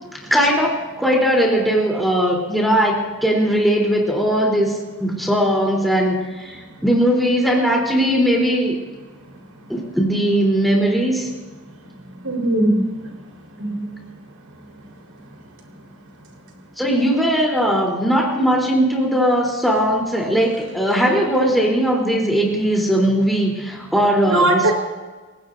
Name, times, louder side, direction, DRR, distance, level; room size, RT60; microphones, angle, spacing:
voice 1, 0.3-8.8 9.7-11.3 16.8-24.7, equal, ahead, -2 dB, 3.5 m, -19 dB
voice 2, 12.2-12.9 13.7-13.8 24.2-24.7, right 1 dB, 85° right, 1 dB, 4.2 m, -18 dB
29.5 x 16.5 x 2.7 m, 1.3 s
head